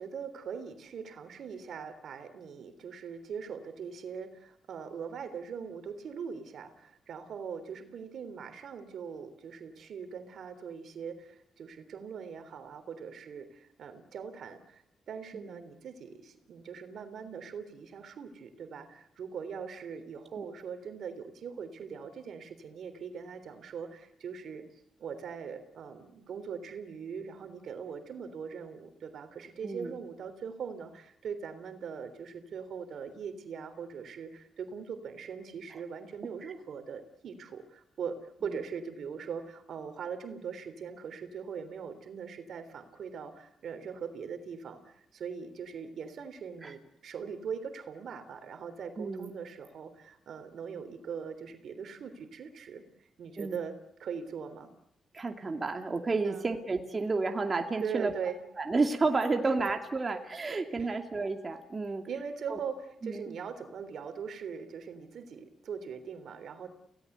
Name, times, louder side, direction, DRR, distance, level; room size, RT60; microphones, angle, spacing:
voice 1, 0.0-54.7 56.2-56.5 57.8-58.4 59.4-59.5 60.5-60.9 62.1-66.7, right 6 dB, 70° right, 9 dB, 3.5 m, -41 dB
voice 2, 49.0-49.4 53.4-53.6 55.1-58.1 58.6-62.0 62.5-62.6 63.0-63.3, right 3 dB, 35° right, 4 dB, 2.5 m, -31 dB
29.5 x 18.0 x 8.1 m, 0.75 s
cardioid pair, 70°, 0 cm